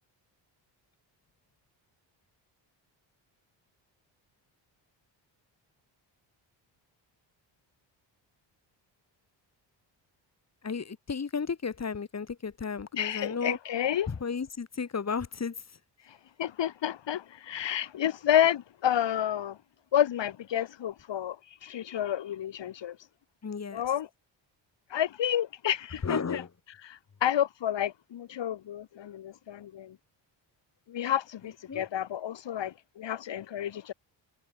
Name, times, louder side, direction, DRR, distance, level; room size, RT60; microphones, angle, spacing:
voice 1, 10.6-13.6 14.1-15.6 23.4-23.8 26.0-26.5 31.7-31.8, left 5 dB, 35° left, 4.4 m, -33 dB
voice 2, 12.9-14.1 16.4-19.6 19.9-21.4 21.6-23.0 23.7-24.1 24.9-26.4 26.8-30.0 30.9-33.9, left 10 dB, 70° left, 4.5 m, -30 dB
cardioid pair, 100°, 46 cm